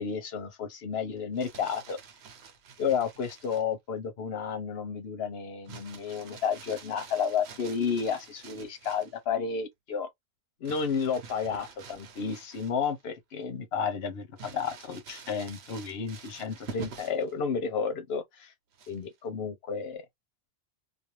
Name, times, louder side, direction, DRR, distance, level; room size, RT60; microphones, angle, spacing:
voice 1, 0.0-2.0 2.8-10.1 10.6-18.5 18.9-20.0, left 6 dB, 80° left, 1.0 m, -32 dB
Crumpling crinkling, 1.2-3.7 5.7-9.2 10.7-13.0 13.4-13.5 14.4-17.3 18.7-19.2, right 6 dB, 85° right, 1.0 m, -47 dB
2.5 x 2.3 x 2.9 m
omnidirectional pair, 1.0 m